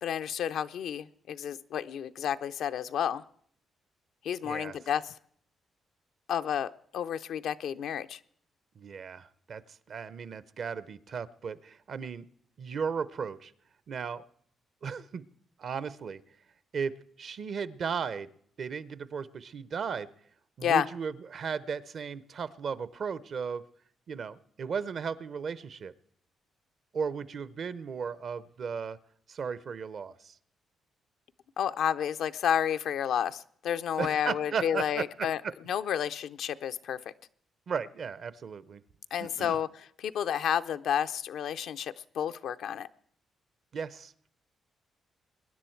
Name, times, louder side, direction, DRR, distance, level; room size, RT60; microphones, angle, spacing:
voice 1, 0.0-3.2 4.2-5.1 6.3-8.2 20.6-20.9 31.6-35.4 35.7-37.0 39.1-42.9, left 9 dB, 80° left, 10 dB, 0.5 m, -31 dB
voice 2, 4.4-4.8 8.8-9.6 9.9-12.3 12.6-13.5 13.9-14.2 14.8-15.2 15.6-16.2 16.7-18.3 18.6-20.1 20.6-23.6 24.1-25.9 26.9-29.0 29.3-30.3 34.0-35.5 37.7-38.8 39.2-39.6 43.7-44.1, right 6 dB, 60° right, 17 dB, 0.7 m, -35 dB
22.5 x 10.0 x 4.5 m, 0.63 s
cardioid pair, 70°, 0 cm